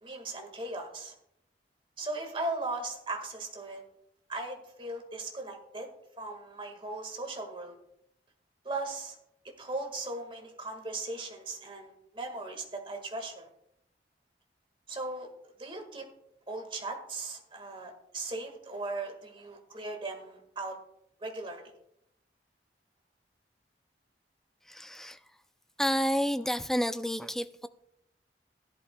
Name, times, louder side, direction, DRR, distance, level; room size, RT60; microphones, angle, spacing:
voice 1, 0.0-1.1 2.0-3.8 4.3-7.8 8.6-9.2 9.6-13.5 14.9-15.3 15.6-16.1 16.5-20.8 21.2-21.6, right 2 dB, 30° right, 3 dB, 1.7 m, -38 dB
voice 2, 24.7-25.2 25.8-27.7, equal, ahead, 11 dB, 0.3 m, -30 dB
16.0 x 11.0 x 2.2 m, 0.79 s
head